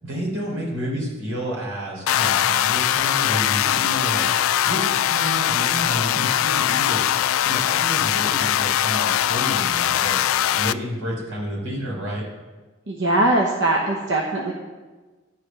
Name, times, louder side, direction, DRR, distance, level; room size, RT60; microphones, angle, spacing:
voice 1, 0.0-4.3 4.6-10.2 10.5-12.2, equal, 85° right, -4 dB, 4.1 m, -30 dB
sound 1, 2.1-10.7, left 11 dB, 80° left, 0.3 m, -21 dB
voice 2, 12.9-14.5, right 1 dB, 60° right, 0 dB, 1.0 m, -21 dB
11.0 x 5.1 x 7.5 m, 1.3 s
head